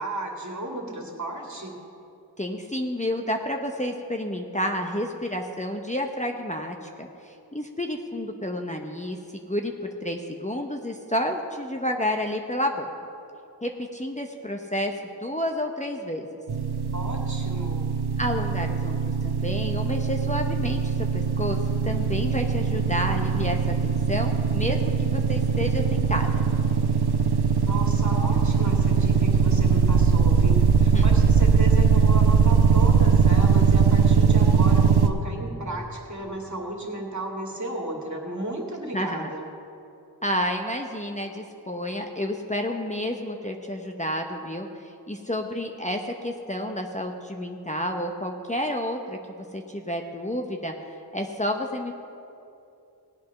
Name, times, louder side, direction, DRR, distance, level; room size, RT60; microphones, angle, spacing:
voice 1, 0.0-1.8 16.9-17.9 27.6-39.4, right 1 dB, 45° right, 0 dB, 2.3 m, -34 dB
voice 2, 2.4-9.2 9.5-9.7 10.0-12.9 13.6-14.9 15.2-16.3 18.2-21.6 21.8-26.4 30.9-31.1 38.9-39.3 40.2-44.7 45.1-49.2 49.5-50.7 51.1-52.0, left 1 dB, 15° left, 2 dB, 0.9 m, -30 dB
sound 1, 16.5-35.1, right 6 dB, 70° right, 0.9 m, -21 dB
17.5 x 8.4 x 5.8 m, 2.7 s
wide cardioid pair, 45°, 41 cm